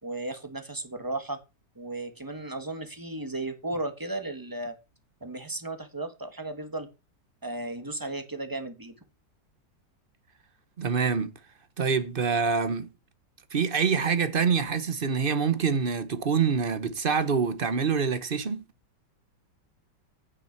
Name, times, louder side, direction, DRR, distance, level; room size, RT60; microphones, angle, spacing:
voice 1, 0.0-1.4 1.8-4.8 5.2-6.9 7.4-8.9, right 2 dB, 15° right, 1.4 m, -35 dB
voice 2, 10.8-11.3 11.8-12.9 13.5-18.6, right 6 dB, 40° right, 0.9 m, -26 dB
9.1 x 6.6 x 5.8 m
omnidirectional pair, 1.9 m